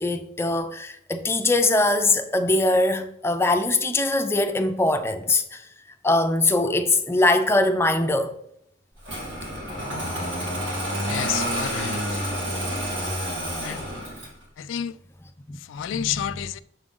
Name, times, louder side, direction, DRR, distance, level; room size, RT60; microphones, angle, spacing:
voice 1, 0.0-5.6 6.0-8.3 15.5-15.8, left 2 dB, 15° left, 0.5 m, -22 dB
Engine starting, 9.0-14.4, equal, 75° right, 2.4 m, -29 dB
voice 2, 11.0-12.2 13.6-13.9 14.6-15.0 15.6-16.6, left 10 dB, 85° left, 0.3 m, -30 dB
6.8 x 3.8 x 3.7 m
head